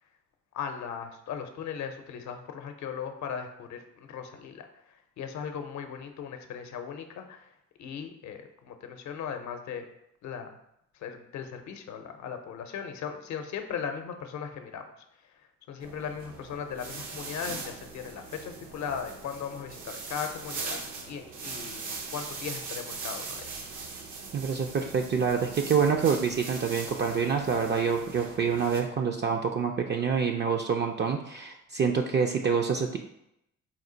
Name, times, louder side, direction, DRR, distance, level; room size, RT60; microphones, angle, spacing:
voice 1, 0.5-7.5 7.8-9.9 10.2-10.5 10.9-14.9 15.2-23.6, left 7 dB, 65° left, 6 dB, 0.6 m, -38 dB
sound 1, 15.8-28.8, right 4 dB, 85° right, 0.8 m, -40 dB
voice 2, 24.3-33.0, right 6 dB, 35° right, 3 dB, 0.4 m, -27 dB
4.3 x 2.4 x 3.8 m, 0.79 s
cardioid pair, 90°, 30 cm